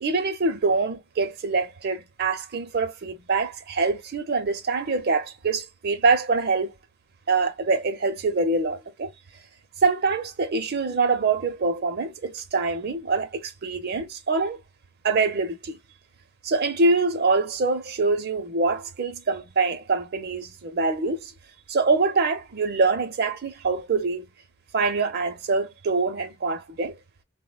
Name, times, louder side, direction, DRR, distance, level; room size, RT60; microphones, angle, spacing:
voice 1, 0.0-6.7 7.3-9.1 9.8-14.6 15.0-15.8 16.4-21.3 21.7-24.3 24.7-26.9, right 3 dB, 50° right, 0.6 m, -24 dB
3.7 x 2.1 x 2.3 m
head